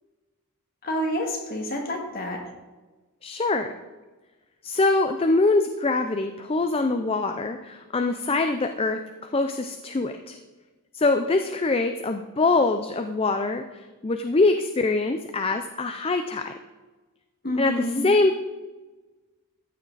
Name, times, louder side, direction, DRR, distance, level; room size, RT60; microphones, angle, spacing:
voice 1, 0.8-2.4 17.4-18.0, equal, 40° left, 0 dB, 2.1 m, -28 dB
voice 2, 3.2-3.7 4.6-9.0 9.3-10.4 10.9-16.5 17.6-18.4, left 3 dB, 25° left, 7 dB, 0.5 m, -24 dB
14.0 x 8.8 x 4.0 m, 1.2 s
head